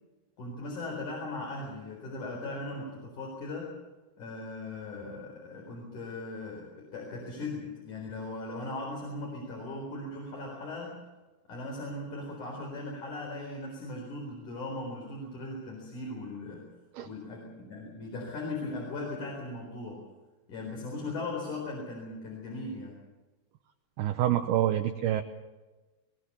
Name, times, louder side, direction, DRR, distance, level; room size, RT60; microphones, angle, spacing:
voice 1, 0.4-3.7 4.2-11.0 11.5-16.6 17.0-20.1 20.5-23.0, left 2 dB, 45° left, -2 dB, 5.4 m, -38 dB
voice 2, 24.0-25.2, right 12 dB, 75° right, 6 dB, 2.4 m, -27 dB
21.5 x 20.0 x 6.8 m, 1.2 s
omnidirectional pair, 5.3 m